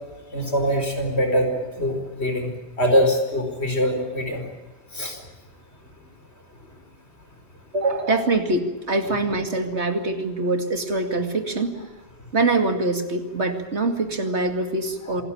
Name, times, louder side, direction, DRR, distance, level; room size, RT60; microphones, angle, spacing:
voice 1, 0.3-2.5 2.8-4.4 4.9-5.2 15.1-15.2, equal, 70° left, 4 dB, 5.1 m, -23 dB
voice 2, 7.7-11.7 12.3-15.2, right 2 dB, 85° right, 6 dB, 2.7 m, -24 dB
26.5 x 18.0 x 8.8 m, 1.2 s
omnidirectional pair, 1.1 m